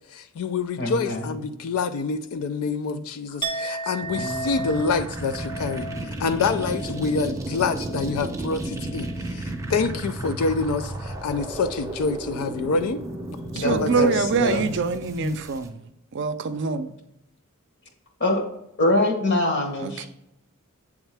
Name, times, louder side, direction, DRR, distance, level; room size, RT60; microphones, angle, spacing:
voice 1, 0.0-5.9 6.2-13.0 13.7-13.9 15.2-15.4, left 4 dB, 75° left, 0.4 m, -27 dB
voice 2, 0.8-1.3 4.1-4.7 13.5-14.7 18.2-18.5 18.8-20.1, left 1 dB, 50° left, 1.2 m, -24 dB
Chink clink, 3.4-9.3 9.6-10.0, right 3 dB, 20° left, 0.8 m, -36 dB
sound 1, 4.0-15.7, right 1 dB, 15° right, 0.6 m, -33 dB
voice 3, 13.5-15.8 16.1-16.9 19.8-20.1, right 4 dB, 50° right, 0.4 m, -25 dB
8.1 x 3.6 x 3.4 m
head